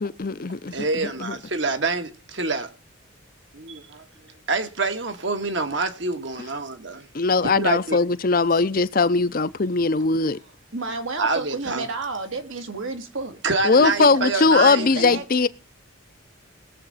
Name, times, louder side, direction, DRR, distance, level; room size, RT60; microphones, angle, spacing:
voice 1, 0.0-1.4 7.1-10.4 13.6-15.5, left 3 dB, 45° left, 0.7 m, -20 dB
voice 2, 0.7-2.7 3.5-4.1 4.5-7.1 7.4-8.0 11.2-11.8 13.4-15.1, right 3 dB, 60° right, 1.8 m, -26 dB
voice 3, 10.7-13.3 13.8-14.1 14.5-15.5, right 3 dB, 80° right, 2.7 m, -31 dB
20.5 x 7.6 x 4.2 m
head